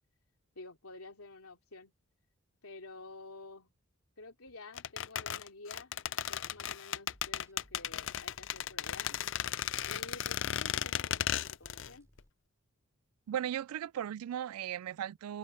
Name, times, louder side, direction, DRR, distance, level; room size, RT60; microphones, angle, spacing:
voice 1, 0.5-1.9 2.6-3.7 4.2-5.9 6.3-9.2 9.8-12.1, left 3 dB, 85° left, 2.9 m, -50 dB
sound 1, 4.8-11.9 12.2-12.3, left 10 dB, 55° left, 0.4 m, -35 dB
sound 2, 6.2-6.7 7.1-10.7 11.1-12.3, equal, 15° right, 3.1 m, -63 dB
voice 2, 13.3-15.4, right 10 dB, 85° right, 0.3 m, -37 dB
head